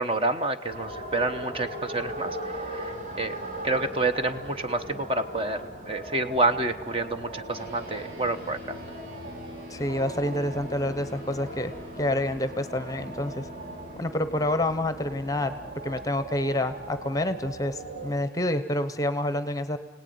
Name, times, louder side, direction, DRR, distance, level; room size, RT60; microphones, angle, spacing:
voice 1, 0.0-3.3 3.6-5.6 5.9-8.6, right 2 dB, 30° right, 8 dB, 1.0 m, -28 dB
sound 1, 0.7-18.2, right 1 dB, 50° right, 5.0 m, -39 dB
sound 2, 6.3-11.5, equal, 80° right, 6.6 m, -51 dB
sound 3, 7.5-17.2, left 1 dB, 65° right, 5.1 m, -47 dB
voice 2, 9.7-13.5 14.0-15.6 15.8-19.8, left 1 dB, 20° left, 11 dB, 0.8 m, -28 dB
29.5 x 18.0 x 9.4 m, 1.4 s
head